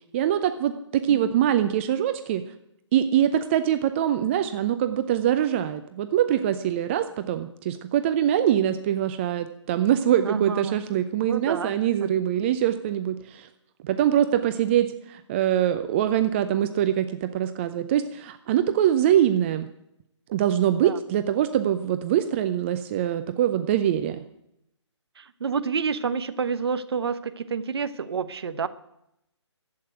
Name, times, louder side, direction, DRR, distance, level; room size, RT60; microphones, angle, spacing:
voice 1, 0.1-2.4 2.9-13.5 13.8-19.7 20.3-24.2, right 10 dB, 25° right, 10 dB, 0.6 m, -23 dB
voice 2, 10.2-10.8 11.3-11.7 12.0-12.1 20.8-21.0 25.2-28.7, right 5 dB, 55° right, 13 dB, 1.0 m, -28 dB
11.5 x 8.6 x 9.1 m, 0.81 s
figure-of-eight pair, 145°, 16 cm